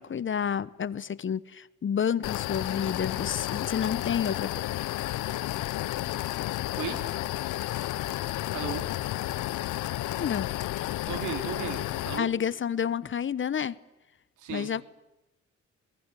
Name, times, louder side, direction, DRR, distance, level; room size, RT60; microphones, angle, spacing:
voice 1, 0.0-4.6 10.2-10.5 12.2-13.8 14.5-14.8, left 8 dB, 40° left, 1.0 m, -29 dB
sound 1, 2.2-12.2, left 15 dB, 80° left, 0.9 m, -32 dB
voice 2, 8.5-8.8 11.1-12.3 14.4-14.7, right 7 dB, 80° right, 4.4 m, -35 dB
24.5 x 22.5 x 9.2 m
cardioid pair, 90°, 30 cm